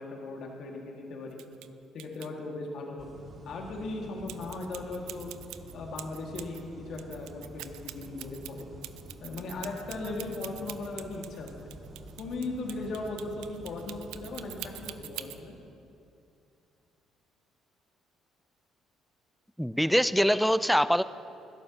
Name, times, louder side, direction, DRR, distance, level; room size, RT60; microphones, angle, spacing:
voice 1, 0.0-1.4 1.9-5.3 5.7-8.7 9.2-11.7 12.2-15.5, left 2 dB, 65° left, 0 dB, 1.9 m, -38 dB
sound 1, 1.3-1.7 2.0-2.3 4.3-6.6 6.9-15.4, right 15 dB, 75° right, 0.4 m, -44 dB
sound 2, 3.0-15.0, right 1 dB, 50° right, 2.3 m, -49 dB
voice 2, 19.6-21.0, equal, ahead, 14 dB, 0.4 m, -23 dB
21.0 x 11.5 x 2.9 m, 2.6 s
hypercardioid pair, 60°, 0 cm